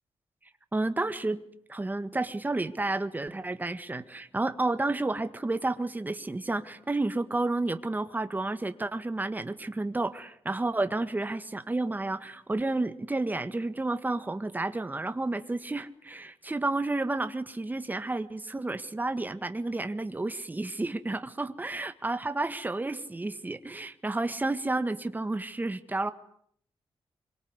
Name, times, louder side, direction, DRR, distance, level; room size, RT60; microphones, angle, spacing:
voice 1, 0.7-1.4 1.7-26.1, right 2 dB, 15° right, 10 dB, 1.7 m, -31 dB
26.0 x 24.0 x 9.7 m, 0.66 s
wide cardioid pair, 150°, 10 cm